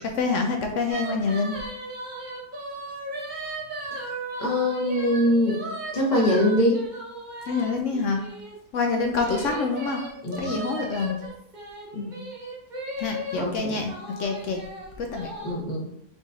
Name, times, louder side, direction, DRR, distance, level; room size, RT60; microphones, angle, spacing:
voice 1, 0.2-1.5 7.5-8.2 8.7-10.0 10.4-11.2 13.0-13.9 14.2-14.6 15.0-15.3, left 4 dB, 70° left, 3 dB, 0.7 m, -26 dB
sound 1, 0.9-8.6 9.1-13.4 13.9-15.5, right 1 dB, 35° right, 0.8 m, -36 dB
voice 2, 4.4-5.6 5.9-6.8 10.2-10.5 11.9-12.1 13.3-13.8 15.4-15.9, left 1 dB, 30° left, -3 dB, 0.9 m, -23 dB
5.3 x 3.1 x 2.6 m, 0.75 s
omnidirectional pair, 1.7 m